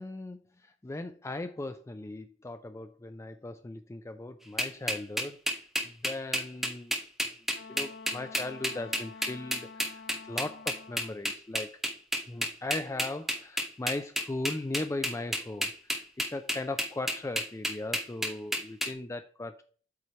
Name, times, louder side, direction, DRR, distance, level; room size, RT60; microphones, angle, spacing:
voice 1, 0.0-5.4 5.8-7.0 7.7-11.7 12.3-19.6, left 2 dB, 15° left, 9 dB, 0.4 m, -38 dB
sound 1, 4.6-18.9, equal, ahead, 0.8 m, -31 dB
Wind instrument woodwind instrument, 7.5-11.2, left 4 dB, 60° left, 0.7 m, -48 dB
8.3 x 3.3 x 5.6 m, 0.42 s
head